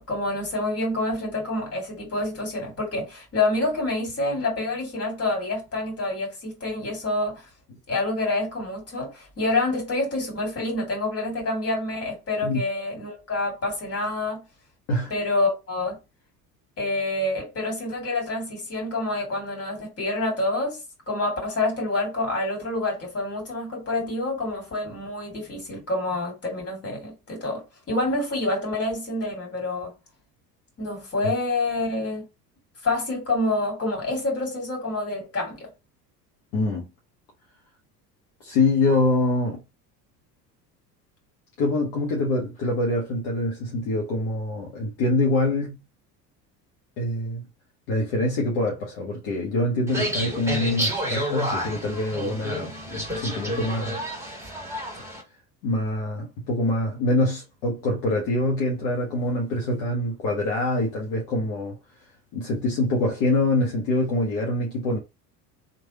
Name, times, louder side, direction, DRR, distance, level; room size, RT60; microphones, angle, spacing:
voice 1, 0.0-7.5 7.9-14.4 15.1-16.0 16.8-20.8 21.1-29.9 30.8-32.3 32.8-35.7, left 2 dB, 30° left, 2.1 m, -27 dB
voice 2, 36.5-36.9 38.4-39.6 41.6-45.8 47.0-47.4 47.9-54.0 55.6-61.7 62.3-65.0, left 2 dB, 50° left, 1.0 m, -25 dB
sound 1, 49.9-55.2, equal, 5° right, 1.7 m, -30 dB
3.2 x 2.5 x 2.8 m
figure-of-eight pair, 65°, 50 cm